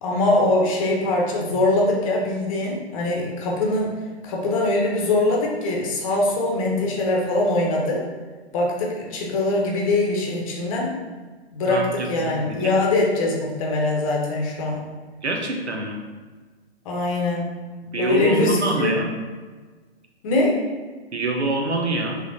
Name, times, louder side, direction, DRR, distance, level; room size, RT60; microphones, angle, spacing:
voice 1, 0.0-8.1 8.5-10.9 11.5-14.8 16.8-17.6 18.0-18.9 20.2-20.6, left 2 dB, 30° left, -1 dB, 0.8 m, -22 dB
voice 2, 11.6-12.8 15.2-16.0 17.9-19.1 21.1-22.2, right 2 dB, 85° right, 2 dB, 0.9 m, -26 dB
4.7 x 3.3 x 2.7 m, 1.4 s
figure-of-eight pair, 130°, 33 cm